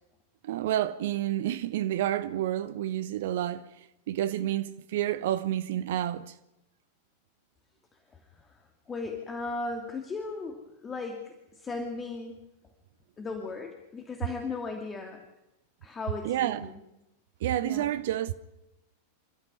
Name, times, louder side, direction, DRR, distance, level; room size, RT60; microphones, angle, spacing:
voice 1, 0.4-6.4 16.2-16.7 17.4-18.3, right 12 dB, 55° right, 0.8 m, -29 dB
voice 2, 8.1-12.4 13.2-15.2 15.8-16.8 17.5-17.9, left 3 dB, 20° left, 2.5 m, -37 dB
28.0 x 13.5 x 9.6 m
figure-of-eight pair, 90°, 0 cm